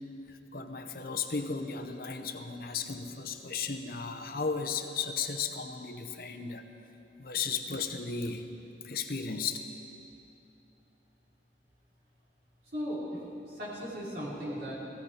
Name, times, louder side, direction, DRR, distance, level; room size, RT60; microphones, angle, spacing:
voice 1, 0.5-6.6 7.2-8.5 8.8-9.6, left 5 dB, 55° left, 6 dB, 0.8 m, -35 dB
voice 2, 12.7-14.8, equal, 60° right, -8 dB, 4.9 m, -37 dB
16.5 x 16.0 x 5.0 m, 2.8 s
head